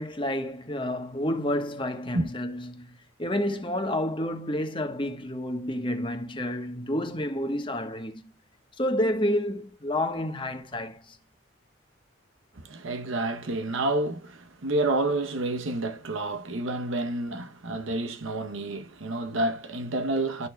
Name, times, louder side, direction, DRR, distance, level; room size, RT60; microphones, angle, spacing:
voice 1, 0.0-8.2 8.8-11.2, left 1 dB, 25° left, 1.2 m, -29 dB
voice 2, 12.6-20.5, right 2 dB, 80° right, 0.9 m, -29 dB
12.5 x 6.4 x 2.3 m
head